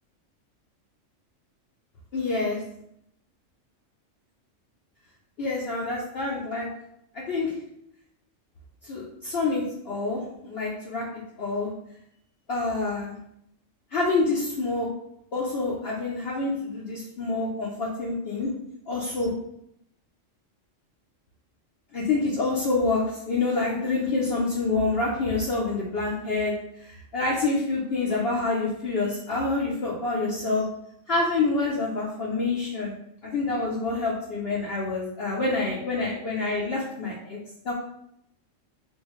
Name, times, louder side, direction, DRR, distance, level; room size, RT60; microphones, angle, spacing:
voice 1, 2.1-2.6 5.4-6.7 7.3-7.5 8.8-11.7 12.5-13.2 13.9-14.9 15.3-18.5 18.9-19.3 21.9-26.5 26.8-30.7 31.1-33.0 33.2-37.4 37.6-37.7, left 3 dB, 60° left, -5 dB, 0.8 m, -27 dB
3.6 x 2.2 x 3.0 m, 0.75 s
omnidirectional pair, 1.3 m